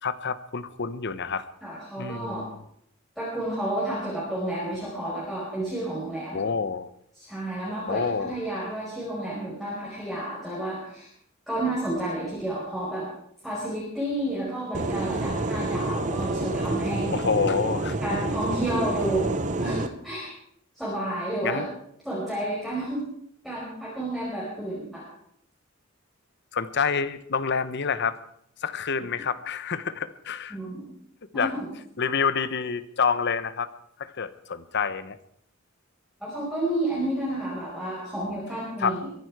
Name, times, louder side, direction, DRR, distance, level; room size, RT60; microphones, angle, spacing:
voice 1, 0.0-1.4 2.0-2.6 6.3-6.9 7.9-8.4 17.1-18.0 21.4-21.7 26.5-28.2 28.6-30.6 31.3-31.5 32.0-33.7 34.0-35.2 38.8-39.0, left 5 dB, 55° left, 13 dB, 0.9 m, -27 dB
voice 2, 1.6-2.4 3.2-6.4 7.2-11.1 11.5-13.0 13.4-17.1 18.0-20.3 20.7-21.6 22.0-23.0 23.4-25.0 30.5-30.9 31.3-31.7 36.2-39.1, right 1 dB, ahead, -8 dB, 5.0 m, -31 dB
sound 1, 14.7-19.9, right 2 dB, 35° right, 0.9 m, -28 dB
23.0 x 11.0 x 4.8 m, 0.70 s
head